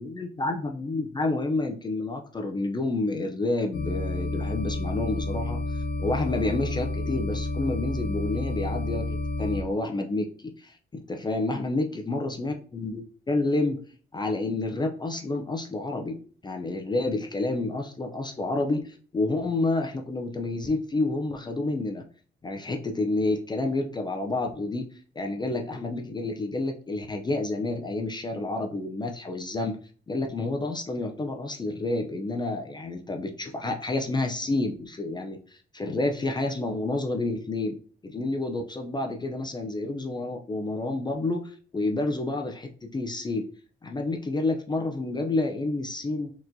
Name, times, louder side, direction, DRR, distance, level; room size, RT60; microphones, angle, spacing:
voice 1, 0.0-13.8 14.1-22.0 22.4-24.9 25.2-29.8 30.1-37.8 38.0-43.5 43.8-46.3, left 2 dB, 20° left, 3 dB, 0.5 m, -29 dB
sound 1, 3.7-9.6, left 2 dB, 80° left, 0.7 m, -30 dB
4.2 x 2.9 x 2.6 m, 0.43 s
cardioid pair, 90°, 20 cm